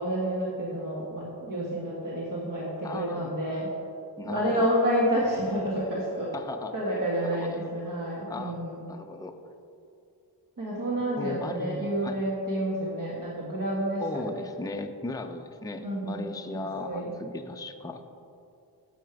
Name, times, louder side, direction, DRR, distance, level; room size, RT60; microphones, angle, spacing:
voice 1, 0.0-3.7 4.2-6.3 6.7-8.9 10.6-14.0 15.8-16.3 16.5-17.1, right 1 dB, 50° right, -5 dB, 1.7 m, -29 dB
voice 2, 2.8-3.3 4.2-4.7 6.3-6.7 7.2-7.9 8.3-8.6 8.9-9.4 11.2-12.2 14.0-18.2, left 2 dB, 10° left, 5 dB, 0.4 m, -37 dB
10.0 x 7.7 x 4.6 m, 2.6 s
wide cardioid pair, 125°, 42 cm